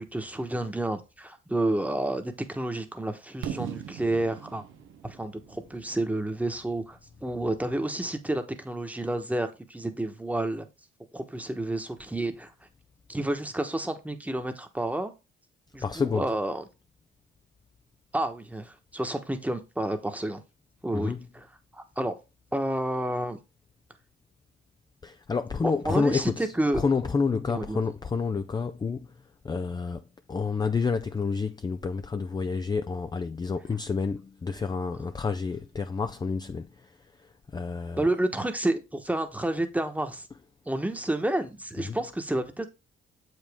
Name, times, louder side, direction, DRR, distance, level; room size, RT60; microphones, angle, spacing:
voice 1, 0.0-4.6 5.0-10.7 11.1-12.5 13.1-15.1 15.7-16.6 18.1-20.4 20.8-21.4 21.7-22.1 22.5-23.4 25.8-26.8 27.5-27.8 38.0-40.3 40.7-42.7, right 1 dB, 5° right, 1.1 m, -30 dB
Fireworks, 3.4-7.3, right 9 dB, 85° right, 0.8 m, -40 dB
voice 2, 15.8-16.3 20.9-21.3 25.0-29.1 29.4-38.0 41.8-42.0, left 4 dB, 20° left, 0.4 m, -29 dB
7.3 x 5.1 x 3.5 m
cardioid pair, 90°, 20 cm